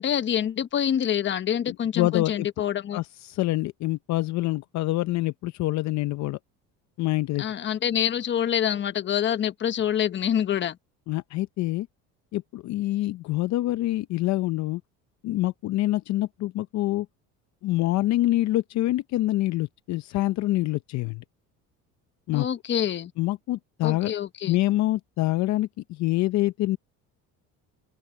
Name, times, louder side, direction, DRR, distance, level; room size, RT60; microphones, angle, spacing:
voice 1, 0.0-3.0 7.4-10.8 22.3-23.1 23.8-24.6, left 9 dB, 35° left, 1.1 m, -26 dB
voice 2, 1.7-2.5 2.9-6.4 7.0-7.5 11.1-11.9 12.3-14.8 15.2-17.1 17.6-21.2 22.3-22.5 23.2-24.1 24.5-26.8, left 16 dB, 60° left, 0.7 m, -26 dB
cardioid pair, 125°, 32 cm